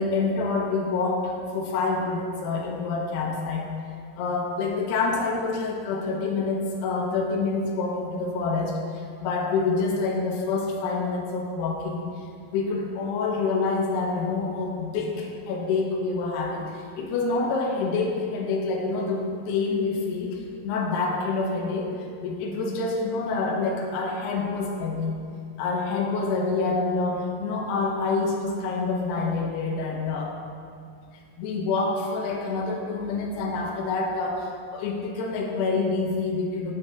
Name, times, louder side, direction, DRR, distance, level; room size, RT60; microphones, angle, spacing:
voice 1, 0.0-3.7 4.2-12.1 12.5-21.9 22.2-25.1 25.6-30.3 31.4-36.7, left 3 dB, 75° left, 0 dB, 3.0 m, -27 dB
9.4 x 8.6 x 3.5 m, 2.4 s
omnidirectional pair, 5.1 m